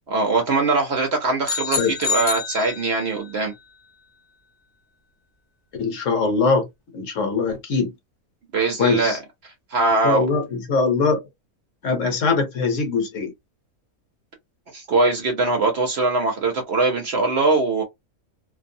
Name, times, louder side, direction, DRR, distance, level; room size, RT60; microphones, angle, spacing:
voice 1, 0.1-3.5 8.5-9.2 9.7-10.3 14.7-17.8, right 3 dB, 55° right, 0.8 m, -21 dB
sound 1, 1.4-3.3, left 5 dB, 35° left, 0.4 m, -27 dB
voice 2, 5.8-6.7 6.9-7.9 8.8-9.2 10.0-11.2 11.8-13.3, left 4 dB, 60° left, 1.1 m, -22 dB
2.6 x 2.2 x 2.6 m
omnidirectional pair, 1.5 m